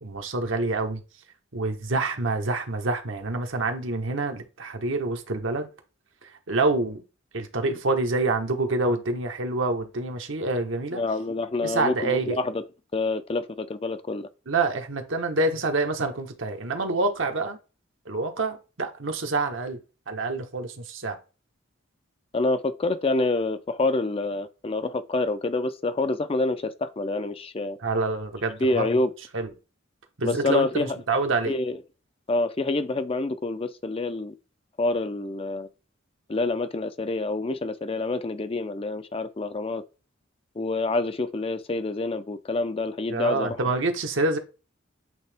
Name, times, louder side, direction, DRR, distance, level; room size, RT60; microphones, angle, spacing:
voice 1, 0.0-1.0 1.5-5.7 6.2-7.0 7.3-11.0 11.6-12.4 14.5-17.6 18.1-19.8 20.1-21.2 27.8-29.0 29.3-29.5 30.2-31.6 43.1-44.4, right 3 dB, 70° right, 1.2 m, -27 dB
voice 2, 10.9-12.6 12.9-14.3 22.3-27.8 28.6-29.1 30.2-31.0 31.5-31.8 32.3-34.3 34.8-35.7 36.3-39.8 40.6-43.6, left 2 dB, 30° left, 0.4 m, -27 dB
8.0 x 3.7 x 3.4 m
head